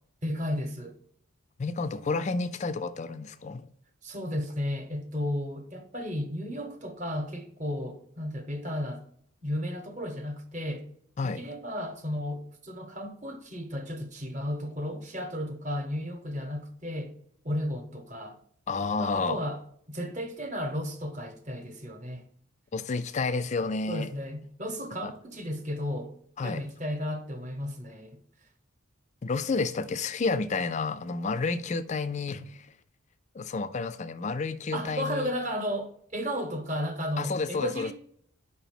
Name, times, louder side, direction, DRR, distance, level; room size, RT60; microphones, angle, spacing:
voice 1, 0.2-1.0 4.0-9.1 9.4-10.9 11.2-17.1 17.4-18.4 19.0-19.6 19.9-22.3 23.9-26.2 26.4-28.2 34.7-37.9, equal, 35° right, 0.9 m, -34 dB
voice 2, 1.6-3.7 11.2-11.4 18.7-19.4 22.7-24.1 25.0-25.1 26.4-26.6 29.2-32.7 33.3-35.3 37.2-37.9, left 4 dB, 35° left, 0.4 m, -30 dB
5.3 x 4.0 x 5.8 m
head